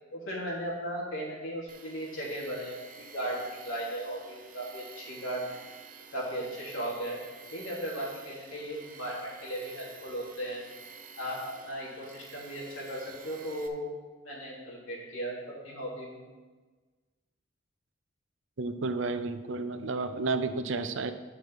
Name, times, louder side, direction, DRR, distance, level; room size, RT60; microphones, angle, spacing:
voice 1, 0.1-5.6 6.1-7.2 7.5-10.6 11.1-13.9 14.2-16.2, right 1 dB, 85° left, -5 dB, 3.2 m, -36 dB
Tools, 1.7-13.7, right 5 dB, 40° right, 0.8 m, -50 dB
voice 2, 18.6-21.1, right 3 dB, 70° right, 10 dB, 0.6 m, -31 dB
9.4 x 6.1 x 4.9 m, 1.3 s
head